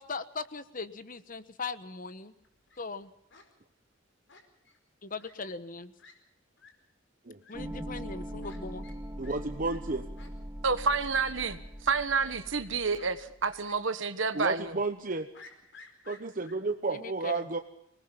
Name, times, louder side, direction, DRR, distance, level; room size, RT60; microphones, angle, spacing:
voice 1, 0.0-2.3 2.8-3.1 5.0-5.9 7.5-8.9 16.9-17.5, left 4 dB, 45° left, 13 dB, 1.2 m, -39 dB
Fowl, 2.4-2.8 3.3-3.5 4.3-4.8 5.2-5.3 5.7-5.8 6.0-6.1 6.6-6.7 7.4-7.5 8.4-8.6 8.8-9.0 9.2-9.4 9.6-9.8 10.2-10.3 10.9-11.0 11.4-11.6 12.2-12.7 13.0-13.1 13.6-13.8 14.1-14.2 15.3-16.6, left 4 dB, 60° left, 4.7 m, -53 dB
sound 1, 7.5-13.6, equal, 15° right, 1.5 m, -42 dB
voice 2, 9.2-10.0 14.3-15.3 16.1-17.6, right 3 dB, 40° right, 7 dB, 1.0 m, -32 dB
voice 3, 10.6-14.8, right 4 dB, 70° right, 10 dB, 1.4 m, -29 dB
26.0 x 20.0 x 5.8 m, 0.77 s
head